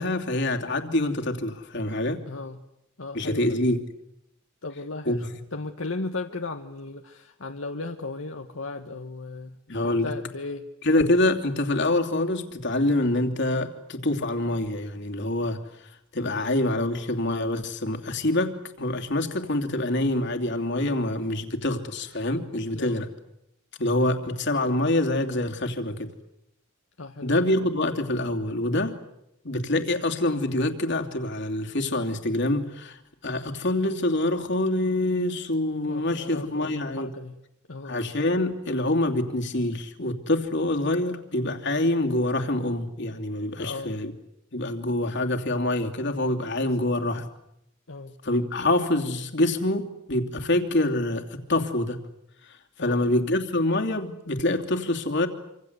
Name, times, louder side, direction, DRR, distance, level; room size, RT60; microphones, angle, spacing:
voice 1, 0.0-2.2 3.1-3.8 5.0-5.2 9.7-10.1 10.8-15.6 16.1-23.1 23.8-26.1 27.2-29.0 29.4-33.0 33.2-37.1 37.8-44.1 44.5-47.2 48.2-52.0 52.8-55.3, left 1 dB, 60° left, 4 dB, 2.8 m, -26 dB
voice 2, 2.3-2.6 3.0-3.6 4.6-10.7 16.2-16.5 22.7-23.0 27.0-27.5 35.9-37.4 37.7-38.0 43.6-44.0 47.9-48.1 52.8-53.1, left 3 dB, 75° left, 4 dB, 1.4 m, -36 dB
27.0 x 26.0 x 8.1 m, 0.82 s
head